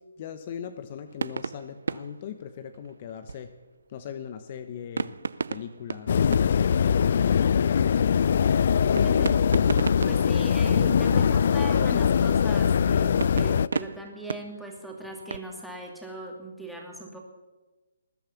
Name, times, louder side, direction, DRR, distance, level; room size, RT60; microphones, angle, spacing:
voice 1, 0.2-3.5 3.9-5.1 5.5-6.2 6.8-7.4, left 8 dB, 40° left, 10 dB, 1.0 m, -39 dB
sound 1, 1.1-3.8 5.0-7.3 7.6-7.9 9.0-11.9 13.2-15.4, right 4 dB, 75° right, 0.6 m, -35 dB
sound 2, 6.1-13.7, left 7 dB, 55° left, 0.4 m, -22 dB
voice 2, 9.0-9.3 10.1-17.2, right 2 dB, ahead, 0 dB, 2.6 m, -39 dB
20.5 x 9.1 x 7.1 m, 1.2 s
hypercardioid pair, 150°, 0 cm